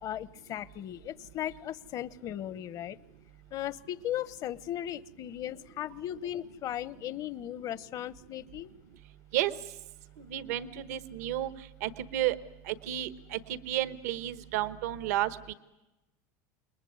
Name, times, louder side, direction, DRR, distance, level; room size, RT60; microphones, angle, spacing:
voice 1, 0.0-3.0 3.5-8.7, left 12 dB, 45° left, 17 dB, 0.9 m, -37 dB
voice 2, 10.2-11.5 11.8-12.4 12.7-15.5, right 13 dB, 85° right, 13 dB, 1.1 m, -32 dB
28.5 x 21.0 x 9.5 m, 1.0 s
supercardioid pair, 120°, 8 cm